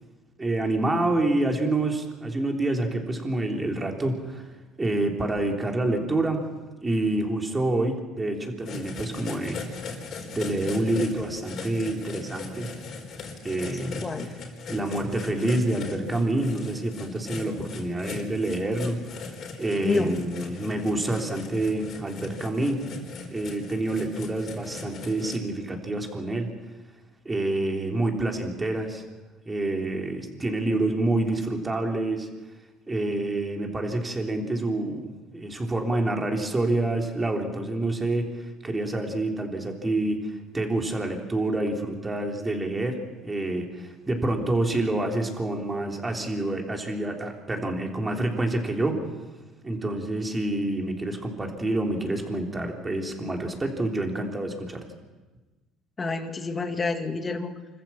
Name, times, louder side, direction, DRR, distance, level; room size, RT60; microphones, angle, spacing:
voice 1, 0.4-4.5 4.8-6.4 6.8-9.8 10.3-12.7 13.4-14.0 14.7-19.2 19.6-22.8 23.3-26.5 27.3-29.0 29.5-32.3 32.9-49.0 49.6-54.8, right 2 dB, 15° right, 2 dB, 3.5 m, -27 dB
sound 1, 8.6-25.4, left 4 dB, 50° left, 4.3 m, -39 dB
voice 2, 13.8-14.3 19.8-20.2 56.0-57.6, left 3 dB, 25° left, 6 dB, 2.1 m, -28 dB
26.0 x 14.5 x 7.5 m, 1.2 s
supercardioid pair, 105°, 0 cm